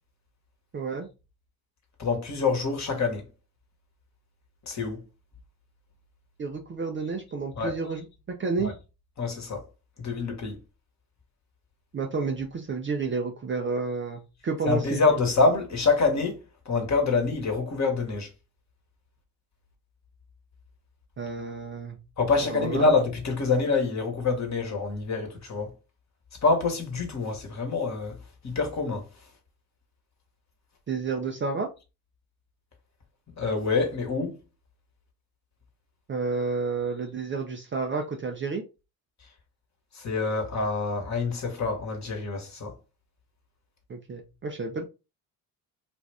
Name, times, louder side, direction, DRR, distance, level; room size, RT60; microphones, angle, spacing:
voice 1, 0.7-1.1 6.4-8.7 11.9-15.1 21.2-22.0 22.4-22.9 30.9-31.7 36.1-38.6 43.9-44.9, right 4 dB, 25° right, 0.6 m, -30 dB
voice 2, 2.0-3.2 4.7-5.0 7.6-7.9 8.6-8.7 9.2-9.6 10.0-10.6 14.6-18.3 22.2-25.7 26.4-28.1 28.4-29.0 33.4-34.4 39.9-42.7, left 4 dB, 35° left, 1.3 m, -26 dB
2.5 x 2.5 x 3.3 m
hypercardioid pair, 60°, 47 cm